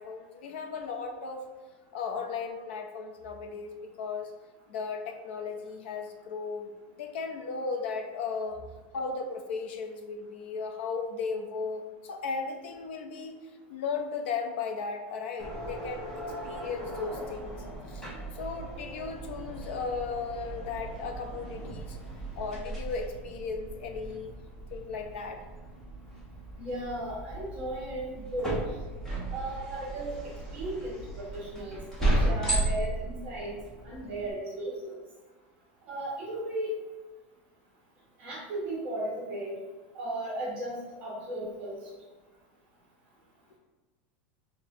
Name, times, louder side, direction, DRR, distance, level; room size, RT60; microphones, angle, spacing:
voice 1, 0.0-1.4 1.9-4.3 4.7-8.6 8.9-13.3 13.7-16.1 16.4-17.6 17.9-22.0 22.4-24.3 24.7-25.4, left 5 dB, 85° left, 4 dB, 0.6 m, -36 dB
sound 1, 15.4-34.3, right 1 dB, 10° left, 0.7 m, -35 dB
voice 2, 26.6-28.7 29.3-33.6 33.8-35.0 35.8-36.7 38.2-39.6 39.9-41.8, right 1 dB, 25° right, -5 dB, 0.9 m, -36 dB
5.9 x 2.2 x 2.8 m, 1.3 s
supercardioid pair, 175°, 6 cm